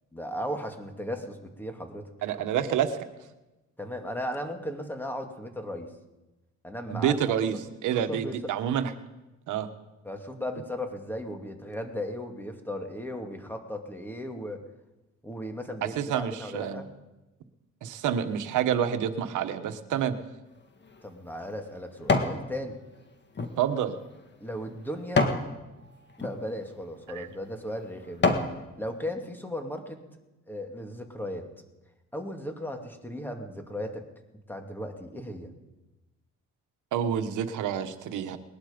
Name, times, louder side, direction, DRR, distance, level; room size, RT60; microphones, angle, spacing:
voice 1, 0.1-2.0 3.8-5.9 6.6-7.6 8.1-8.4 10.0-14.6 15.2-16.9 21.0-22.7 24.4-25.3 26.2-28.4 28.8-30.0 30.5-31.5 32.1-34.0 34.5-35.5, equal, 5° left, 4 dB, 2.3 m, -36 dB
voice 2, 2.2-3.0 6.9-7.6 7.8-8.9 9.5-9.7 16.0-16.8 17.8-20.1 23.6-24.0 27.1-27.3 36.9-38.4, right 9 dB, 80° right, 9 dB, 1.3 m, -28 dB
sound 1, 20.6-22.4 22.9-25.5 26.1-26.4 27.0-27.2 27.7-28.6 29.1-29.2, left 3 dB, 35° left, 1.7 m, -29 dB
20.0 x 11.5 x 5.2 m, 1.0 s
cardioid pair, 90°, 30 cm